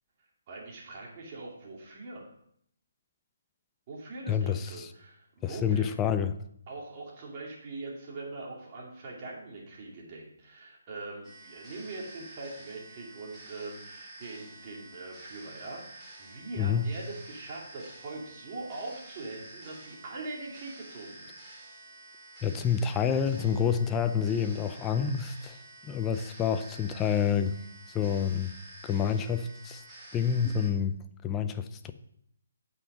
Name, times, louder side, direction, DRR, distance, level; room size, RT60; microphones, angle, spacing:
voice 1, 0.5-2.3 3.9-5.9 6.7-21.3, right 3 dB, 35° right, -2 dB, 2.7 m, -42 dB
voice 2, 4.3-4.9 5.4-6.3 16.6-16.9 22.4-25.6 25.8-27.6 27.9-28.5 28.8-29.8 30.1-31.0 31.2-31.9, left 7 dB, 15° left, 9 dB, 0.5 m, -28 dB
sound 1, 11.2-30.7, right 2 dB, 10° right, 2.6 m, -50 dB
8.2 x 5.7 x 5.6 m, 0.70 s
hypercardioid pair, 150°, 0 cm